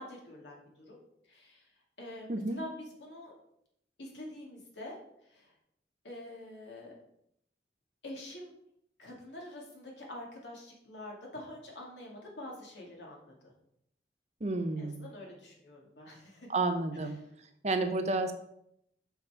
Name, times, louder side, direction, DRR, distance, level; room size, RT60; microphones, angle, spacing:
voice 1, 0.0-3.3 4.0-5.5 6.0-6.9 8.0-8.5 9.0-13.5 14.8-16.5 17.0-17.1, left 1 dB, 85° left, -1 dB, 2.4 m, -46 dB
voice 2, 14.4-15.1 16.5-17.2 17.6-18.3, right 2 dB, 40° right, 7 dB, 0.8 m, -31 dB
5.9 x 5.7 x 5.8 m, 0.75 s
head